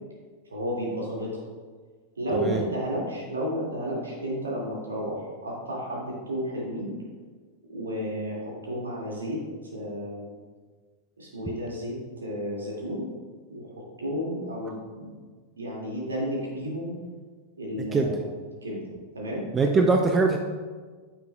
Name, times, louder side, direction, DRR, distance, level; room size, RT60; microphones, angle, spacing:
voice 1, 0.5-1.4 2.2-7.0 7.7-9.4 9.7-10.3 11.2-13.1 13.5-15.1 15.6-16.9 17.6-18.1 18.6-18.8 19.1-19.5, equal, 75° right, -4 dB, 2.4 m, -32 dB
voice 2, 2.3-2.6 17.9-18.2 19.5-20.4, right 3 dB, 20° right, 4 dB, 0.6 m, -22 dB
9.1 x 7.3 x 2.4 m, 1.5 s
figure-of-eight pair, 90°, 0 cm